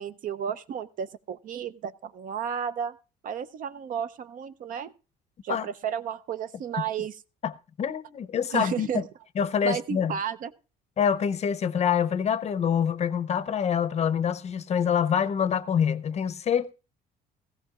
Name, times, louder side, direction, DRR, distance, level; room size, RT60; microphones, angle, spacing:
voice 1, 0.0-3.0 3.2-4.9 5.4-7.2 8.5-9.0 9.6-10.5, right 8 dB, 55° right, 0.5 m, -33 dB
voice 2, 7.8-9.0 9.4-10.2 11.0-16.7, left 8 dB, 40° left, 0.6 m, -26 dB
16.0 x 15.5 x 2.4 m
cardioid pair, 110°, 17 cm